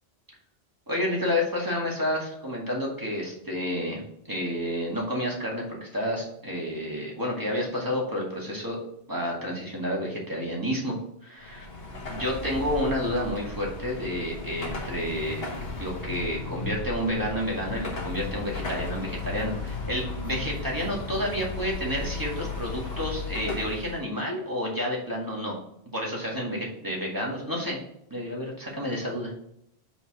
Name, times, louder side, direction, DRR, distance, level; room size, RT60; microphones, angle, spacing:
voice 1, 0.9-4.0 4.3-8.8 9.1-11.0 11.2-11.7 12.1-15.4 15.8-25.6 25.9-27.8 28.1-29.3, equal, 20° right, -3 dB, 2.1 m, -30 dB
Car passing by / Traffic noise roadway noise / Engine, 11.4-24.0, left 3 dB, 65° left, 1.5 m, -35 dB
5.4 x 4.5 x 6.3 m, 0.75 s
omnidirectional pair, 1.1 m